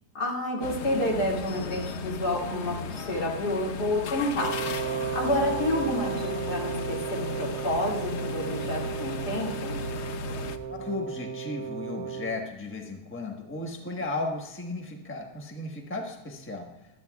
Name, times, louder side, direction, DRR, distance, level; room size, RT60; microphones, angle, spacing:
voice 1, 0.1-4.5 5.1-9.8, left 1 dB, 80° left, -2 dB, 3.0 m, -29 dB
sound 1, 0.6-10.6, left 4 dB, 60° left, 0.7 m, -36 dB
Wind instrument woodwind instrument, 4.4-12.4, right 7 dB, 70° right, 1.1 m, -34 dB
voice 2, 10.7-16.7, left 2 dB, 10° left, 2 dB, 1.0 m, -35 dB
16.0 x 12.0 x 2.3 m, 1.0 s
omnidirectional pair, 1.7 m